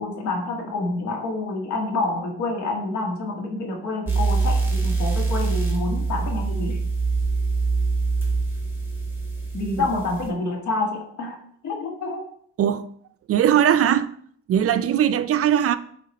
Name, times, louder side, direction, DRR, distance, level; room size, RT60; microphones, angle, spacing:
voice 1, 0.0-6.8 9.5-11.4 11.6-12.2, left 2 dB, 70° left, 1.6 m, -28 dB
sound 1, 4.1-10.3, right 4 dB, 5° right, 1.9 m, -24 dB
voice 2, 13.3-14.1 14.5-15.8, right 10 dB, 50° right, 0.4 m, -19 dB
8.9 x 3.1 x 4.2 m
cardioid pair, 90°, 30 cm